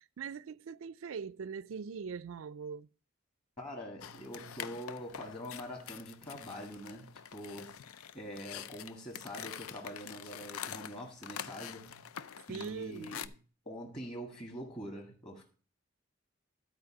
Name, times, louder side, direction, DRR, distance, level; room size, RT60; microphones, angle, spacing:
voice 1, 0.0-2.9 12.5-13.2, right 6 dB, 70° right, 0.4 m, -42 dB
voice 2, 3.6-12.0 12.5-13.3 13.6-15.4, equal, 25° left, 1.6 m, -44 dB
sound 1, 4.0-13.3, left 9 dB, 85° left, 0.5 m, -46 dB
12.0 x 4.6 x 5.8 m
head